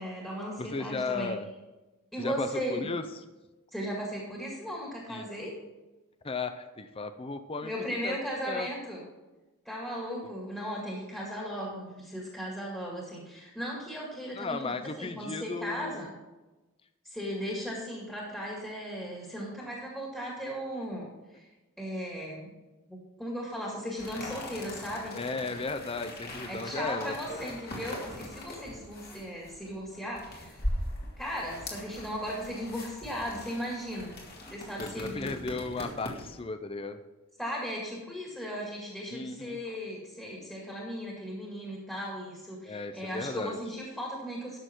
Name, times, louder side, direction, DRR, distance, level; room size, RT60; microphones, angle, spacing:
voice 1, 0.0-1.3 2.1-2.9 3.7-5.6 7.6-9.0 9.6-16.1 17.0-21.5 21.8-22.5 22.9-25.2 26.5-30.6 31.2-34.2 34.5-35.4 37.4-44.6, equal, 5° left, -4 dB, 2.1 m, -37 dB
voice 2, 0.6-1.5 2.2-3.1 5.1-5.3 6.2-7.7 8.0-8.2 8.5-8.7 14.4-16.0 25.1-27.6 34.8-37.0 39.1-39.6 42.6-43.6, left 3 dB, 25° left, 9 dB, 0.5 m, -35 dB
sound 1, 24.0-36.4, left 1 dB, 45° left, 2.3 m, -41 dB
12.5 x 6.8 x 4.5 m, 1.1 s
head